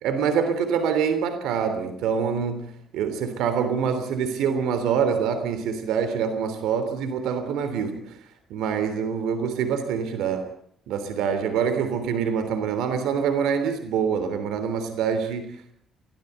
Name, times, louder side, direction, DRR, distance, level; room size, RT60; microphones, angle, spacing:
voice 1, 0.0-8.0 8.5-10.5 10.9-15.5, right 7 dB, 90° right, 9 dB, 3.2 m, -25 dB
23.0 x 17.0 x 8.1 m, 0.68 s
cardioid pair, 125°, 0 cm